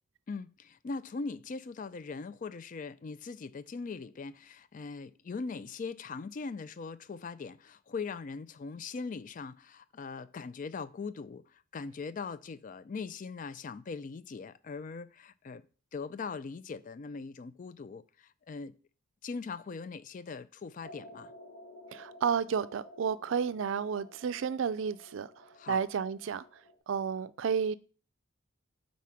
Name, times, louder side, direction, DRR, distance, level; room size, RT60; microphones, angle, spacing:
voice 1, 0.3-15.6 15.9-18.7 19.2-21.3 25.6-25.8, left 4 dB, 40° left, 0.3 m, -40 dB
sound 1, 20.8-26.8, left 1 dB, 60° left, 1.4 m, -53 dB
voice 2, 21.9-26.4 26.9-27.8, right 6 dB, 70° right, 0.4 m, -32 dB
4.8 x 4.1 x 5.7 m
head